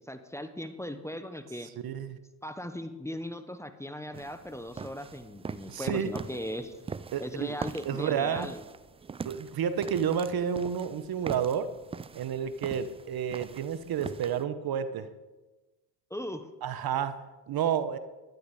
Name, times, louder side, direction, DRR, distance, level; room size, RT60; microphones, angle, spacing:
voice 1, 0.1-1.7 2.4-6.7 7.2-8.6 16.1-16.5, left 1 dB, 5° left, 8 dB, 1.1 m, -38 dB
voice 2, 1.8-2.2 5.7-6.1 7.1-7.5 7.9-8.5 9.2-11.7 12.1-15.1 16.6-17.2 17.5-18.0, right 8 dB, 50° right, 12 dB, 1.1 m, -30 dB
sound 1, 4.1-14.4, right 5 dB, 15° right, 0.3 m, -43 dB
12.0 x 10.5 x 5.0 m, 1.1 s
supercardioid pair, 70°, 48 cm